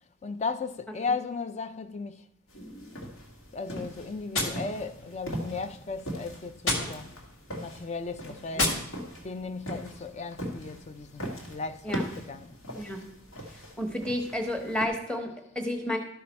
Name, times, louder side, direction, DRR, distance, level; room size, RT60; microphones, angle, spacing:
voice 1, 0.2-2.3 3.0-3.1 3.5-7.1 7.6-8.8 9.2-12.6, left 4 dB, 30° left, 0.4 m, -36 dB
sound 1, 2.5-14.9, equal, 80° left, 1.9 m, -40 dB
Gunshot gunfire, 4.3-5.4 6.6-7.4 8.5-9.4, left 2 dB, 65° left, 1.6 m, -32 dB
voice 2, 13.8-16.0, left 1 dB, 5° left, 1.0 m, -31 dB
12.5 x 5.6 x 4.3 m
head